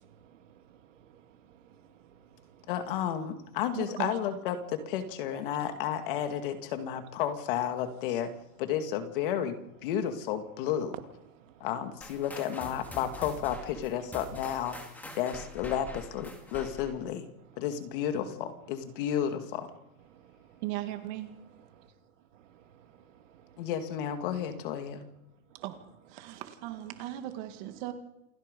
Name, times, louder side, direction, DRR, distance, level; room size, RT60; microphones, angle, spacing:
voice 1, 0.0-2.7 11.3-11.7 15.1-15.2 20.1-20.6 21.7-23.7 25.5-25.6 26.2-26.4, right 9 dB, 60° right, 2.4 m, -59 dB
voice 2, 2.7-8.3 8.6-9.6 9.8-10.9 11.6-14.8 15.2-17.3 17.6-19.7 23.6-25.1, left 9 dB, 40° left, 2.2 m, -32 dB
voice 3, 3.7-4.2 20.6-21.3 25.5-25.8 26.1-27.9, right 14 dB, 35° right, 2.2 m, -37 dB
sound 1, 12.0-17.1, left 1 dB, 5° left, 2.0 m, -45 dB
28.0 x 17.5 x 5.4 m
supercardioid pair, 175°, 42 cm